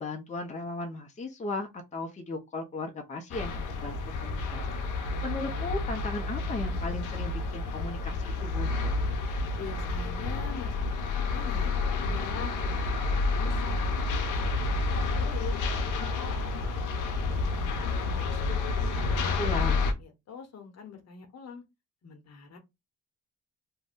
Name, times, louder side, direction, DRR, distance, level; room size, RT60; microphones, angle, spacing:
voice 1, 0.0-8.9 19.4-19.8, left 3 dB, 25° left, 0.6 m, -36 dB
sound 1, 3.3-19.9, left 3 dB, 85° left, 0.6 m, -30 dB
voice 2, 9.6-11.7 12.0-14.0 14.4-15.6 15.9-16.5 16.8-18.4 18.9-21.6 22.0-22.6, left 6 dB, 60° left, 0.9 m, -44 dB
2.5 x 2.2 x 3.5 m
cardioid pair, 90°, 30 cm